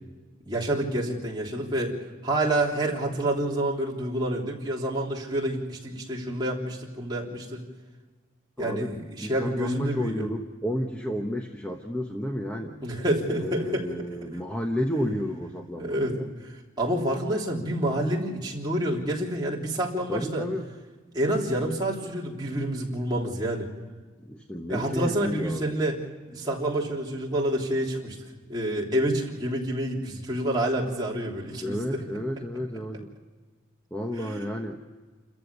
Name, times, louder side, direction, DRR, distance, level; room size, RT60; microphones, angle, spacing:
voice 1, 0.4-2.0 2.2-7.6 8.6-10.2 12.8-13.9 15.8-20.5 21.1-23.7 24.7-26.0 26.3-28.2 28.5-32.0 34.2-34.5, right 1 dB, 20° right, -3 dB, 3.4 m, -28 dB
voice 2, 8.6-12.8 13.3-16.3 20.1-20.7 24.3-26.0 31.6-33.1 33.9-34.8, equal, 5° left, 3 dB, 1.0 m, -31 dB
29.0 x 14.5 x 7.0 m, 1.4 s
head